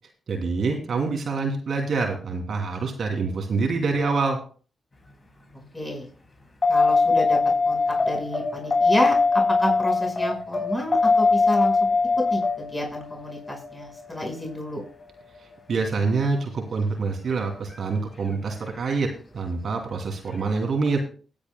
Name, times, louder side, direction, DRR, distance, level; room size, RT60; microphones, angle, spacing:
voice 1, 0.3-4.4 15.7-19.1 19.3-21.0, right 4 dB, 65° right, 2 dB, 2.7 m, -26 dB
voice 2, 5.7-6.1 6.7-7.4 7.7-9.2 9.6-11.8 12.3-14.8, left 1 dB, 10° left, 0 dB, 5.2 m, -29 dB
sound 1, 6.6-15.0 17.7-17.8, left 4 dB, 40° left, 4.8 m, -22 dB
21.0 x 8.5 x 2.2 m, 0.39 s
supercardioid pair, 45°, 0 cm